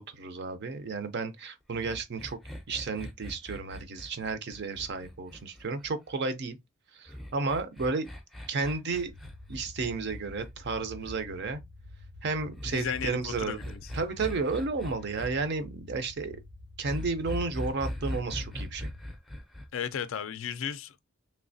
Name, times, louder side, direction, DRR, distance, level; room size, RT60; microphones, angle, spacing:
voice 1, 0.0-2.4 2.7-6.6 7.0-8.1 8.5-9.1 9.5-11.6 12.2-13.6 13.9-16.4 16.8-18.9, right 4 dB, 50° right, 0.5 m, -32 dB
sound 1, 1.7-6.1 7.1-11.2 12.5-15.3 16.8-19.7, equal, ahead, 0.5 m, -40 dB
sound 2, 9.0-19.0, left 1 dB, 65° right, 0.9 m, -48 dB
voice 2, 12.6-13.9 19.7-21.0, left 8 dB, 60° left, 0.3 m, -35 dB
3.2 x 2.7 x 2.6 m
head